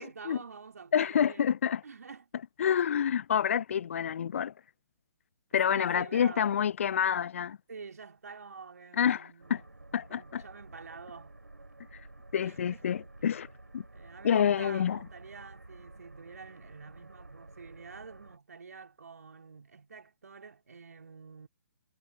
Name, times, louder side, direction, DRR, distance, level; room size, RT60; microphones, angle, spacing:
voice 1, 0.0-1.6 1.8-2.2 2.6-2.7 5.5-6.6 7.7-9.7 10.1-11.4 12.4-12.9 13.9-21.5, right 5 dB, 65° right, 3.3 m, -48 dB
voice 2, 0.9-1.8 2.6-4.5 5.5-7.6 9.0-9.6 9.9-10.4 12.3-13.5 13.7-13.8 14.2-15.0, left 8 dB, 50° left, 0.7 m, -28 dB
sound 1, 9.4-18.4, right 2 dB, 85° right, 3.2 m, -52 dB
figure-of-eight pair, 130°, 9 cm